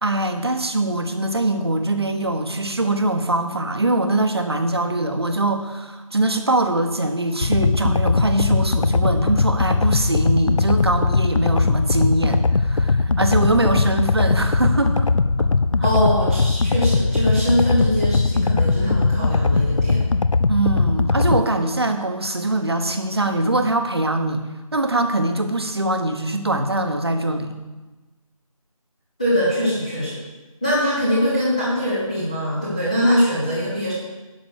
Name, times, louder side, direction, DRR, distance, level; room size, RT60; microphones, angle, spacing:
voice 1, 0.0-15.1 15.4-15.5 20.5-24.4 24.7-27.5, right 2 dB, 45° right, 6 dB, 1.1 m, -22 dB
sound 1, 7.4-21.4, left 3 dB, 60° left, 0.4 m, -19 dB
voice 2, 15.8-20.0 29.2-30.2 30.6-33.9, equal, 10° left, -9 dB, 0.9 m, -22 dB
10.5 x 6.1 x 6.4 m, 1.2 s
figure-of-eight pair, 170°, 18 cm